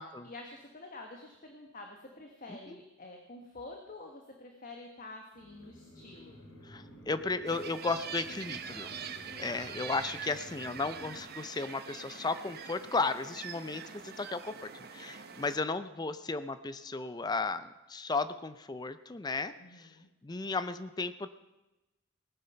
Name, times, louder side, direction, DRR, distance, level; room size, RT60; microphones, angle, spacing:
voice 1, 0.2-6.4 9.4-9.6 19.6-20.1, left 2 dB, 40° left, 3 dB, 1.4 m, -48 dB
sound 1, 5.3-11.3, left 1 dB, 85° left, 3.1 m, -52 dB
voice 2, 6.7-8.9 9.4-19.9 20.2-21.3, left 3 dB, 20° left, 13 dB, 0.5 m, -35 dB
sound 2, 7.4-15.6, right 7 dB, 50° right, 0.9 m, -44 dB
18.0 x 9.6 x 5.7 m, 1.0 s
head